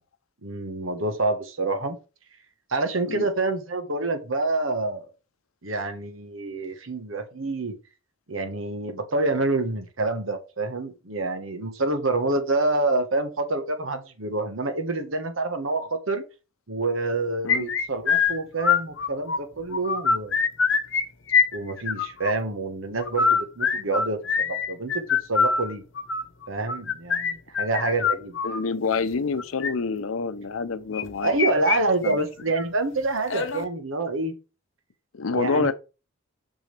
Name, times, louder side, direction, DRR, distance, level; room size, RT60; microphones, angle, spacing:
voice 1, 0.4-2.0 2.7-5.1 5.6-7.8 8.3-16.2 16.7-20.3 21.5-25.8 26.5-28.4 31.2-34.3 35.3-35.7, right 2 dB, 75° right, 1.3 m, -27 dB
sound 1, 17.5-19.4 19.7-21.0 21.3-22.3 23.0-28.6 29.4-29.7 30.9-31.8 32.0-32.1 32.6-32.7 33.3-33.6, left 6 dB, 65° left, 1.0 m, -24 dB
voice 2, 28.4-31.4 32.0-32.2 35.1-35.7, left 4 dB, 90° left, 0.6 m, -27 dB
6.6 x 6.2 x 3.3 m
head